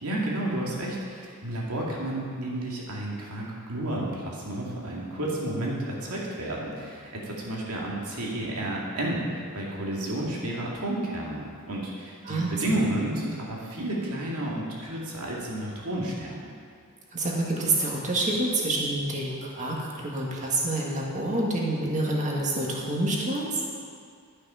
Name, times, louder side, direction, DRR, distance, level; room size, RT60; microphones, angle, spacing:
voice 1, 0.0-16.4, right 1 dB, 85° right, -3 dB, 2.2 m, -31 dB
voice 2, 12.3-12.8 17.1-23.6, right 2 dB, 35° right, -3 dB, 1.8 m, -27 dB
12.0 x 6.6 x 5.6 m, 2.2 s
head